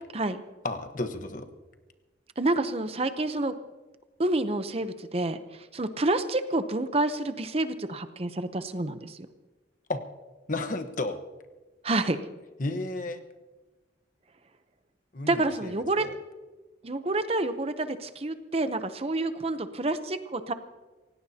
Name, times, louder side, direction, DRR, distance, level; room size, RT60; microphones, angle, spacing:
voice 1, 0.6-1.5 9.9-10.0 10.5-11.2 12.6-13.2 15.1-15.7 16.0-16.1, left 2 dB, 45° left, 7 dB, 1.2 m, -32 dB
voice 2, 2.4-3.5 4.2-9.3 11.8-12.2 15.3-16.1 16.8-20.5, right 2 dB, 35° right, 10 dB, 0.7 m, -28 dB
27.5 x 17.0 x 2.8 m, 1.2 s
head